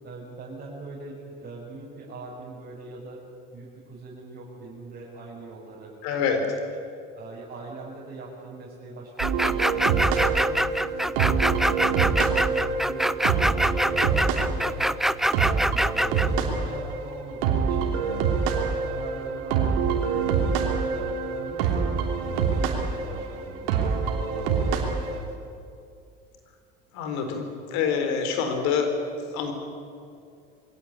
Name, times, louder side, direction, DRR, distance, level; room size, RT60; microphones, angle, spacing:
voice 1, 0.0-3.2 3.5-5.9 7.1-10.0 10.4-13.1 13.4-15.0 15.3-18.2 18.5-21.9 22.3-25.4, right 3 dB, 35° right, -5 dB, 6.3 m, -42 dB
voice 2, 6.0-6.5 26.9-28.9 29.3-29.5, left 6 dB, 70° left, 6 dB, 4.1 m, -26 dB
sound 1, 9.2-16.3, equal, ahead, 0.4 m, -24 dB
sound 2, 9.2-25.2, right 5 dB, 75° right, 3.1 m, -26 dB
22.0 x 17.0 x 10.0 m, 2.4 s
hypercardioid pair, 75°, 29 cm